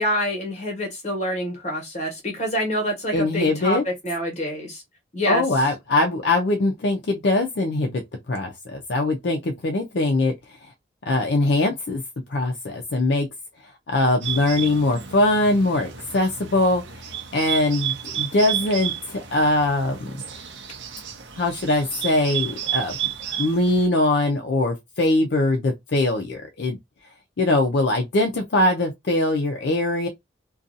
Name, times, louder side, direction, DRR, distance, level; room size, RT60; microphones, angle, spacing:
voice 1, 0.0-4.8 5.1-5.4, equal, 40° left, 1.2 m, -26 dB
voice 2, 3.1-3.8 5.3-8.0 8.3-10.3 11.1-12.0 12.3-13.3 13.9-16.8 17.3-20.1 21.4-23.0 23.4-26.8 27.4-30.1, left 2 dB, 65° left, 0.5 m, -22 dB
Bird, 14.2-23.9, right 10 dB, 75° right, 0.6 m, -32 dB
2.6 x 2.3 x 2.6 m
head